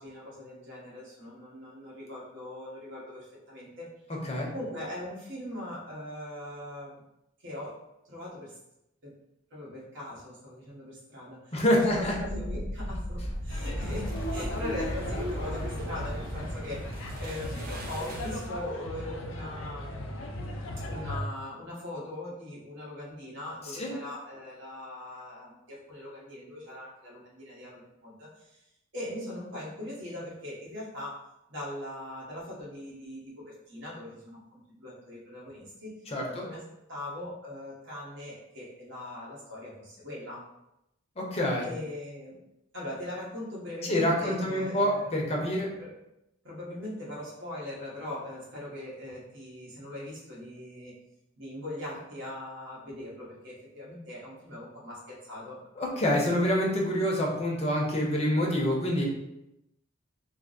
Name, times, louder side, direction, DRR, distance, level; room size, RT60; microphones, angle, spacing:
voice 1, 0.0-3.9 4.5-7.0 7.4-7.8 8.1-8.5 9.0-9.2 9.5-20.2 20.9-28.6 28.9-31.2 31.5-36.0 36.3-36.6 36.9-40.4 41.6-42.4 42.7-45.2 45.8-45.9 46.4-50.9 51.4-55.6, left 1 dB, 65° right, -6 dB, 1.3 m, -40 dB
voice 2, 11.5-12.1 23.8-23.9 36.1-36.2 41.2-41.7 43.8-45.7 55.8-59.0, left 1 dB, 30° left, -2 dB, 0.8 m, -26 dB
sound 1, 11.8-18.6, equal, 45° right, 0.6 m, -37 dB
sound 2, 13.5-21.2, left 1 dB, 75° left, 0.5 m, -37 dB
3.3 x 2.0 x 3.8 m, 0.87 s
head